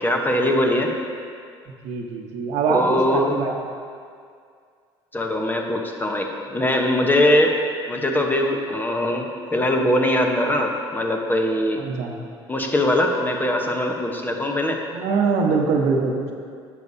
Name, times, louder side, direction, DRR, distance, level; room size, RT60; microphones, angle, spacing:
voice 1, 0.0-0.9 2.7-3.4 5.1-7.5 7.9-11.8 12.5-14.8, left 1 dB, 15° left, 2 dB, 0.9 m, -21 dB
voice 2, 1.8-3.5 11.8-12.1 14.9-16.3, right 5 dB, 65° right, 1 dB, 1.0 m, -23 dB
10.5 x 6.8 x 2.7 m, 2.2 s
hypercardioid pair, 70°, 12 cm